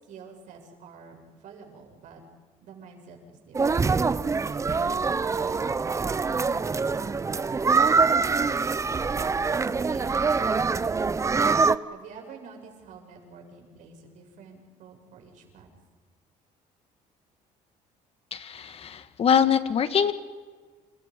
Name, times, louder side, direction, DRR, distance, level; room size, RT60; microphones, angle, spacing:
voice 1, 0.0-2.2 2.6-3.9 4.5-8.7 9.1-11.3 11.9-15.7, right 4 dB, 70° right, 2 dB, 6.9 m, -48 dB
sound 1, 3.5-11.8, right 4 dB, 20° right, 0.7 m, -24 dB
voice 2, 18.3-20.1, left 7 dB, 45° left, 11 dB, 1.8 m, -23 dB
28.5 x 28.0 x 5.4 m, 1.4 s
cardioid pair, 110°, 14 cm